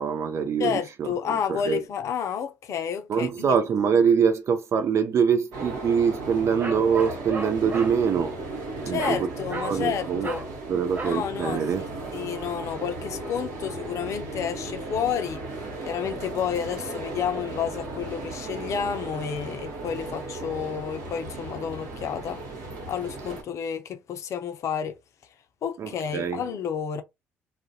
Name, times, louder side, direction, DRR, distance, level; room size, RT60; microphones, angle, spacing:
voice 1, 0.0-1.8 3.1-8.4 8.8-9.3 9.6-10.3 10.7-11.9 25.8-26.4, right 6 dB, 50° right, 0.4 m, -24 dB
voice 2, 0.6-3.5 8.9-10.4 11.0-11.6 12.1-22.4 22.9-25.0 25.6-27.0, left 8 dB, 60° left, 0.5 m, -30 dB
sound 1, 5.5-23.4, right 2 dB, 70° right, 1.1 m, -36 dB
Bark, 6.6-8.0 9.0-9.2 9.5-9.8 10.2-10.5 11.0-11.2, right 3 dB, 30° right, 0.8 m, -34 dB
2.4 x 2.1 x 2.7 m
hypercardioid pair, 50°, 6 cm